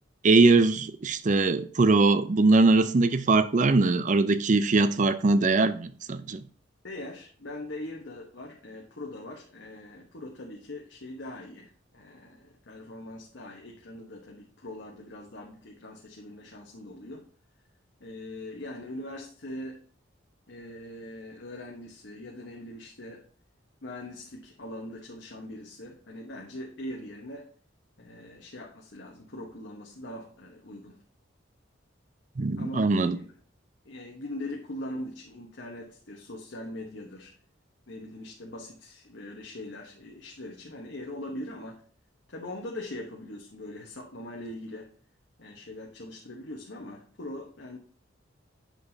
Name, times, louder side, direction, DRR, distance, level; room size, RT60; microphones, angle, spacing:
voice 1, 0.2-6.4 32.4-33.2, right 3 dB, 40° right, 0.5 m, -21 dB
voice 2, 6.8-17.3 18.0-19.8 20.5-23.3 23.8-27.5 28.0-31.0 32.6-33.3 33.8-37.3 37.9-41.8 42.3-44.9 45.4-47.8, left 1 dB, 65° left, 1.1 m, -41 dB
8.1 x 6.2 x 2.7 m
head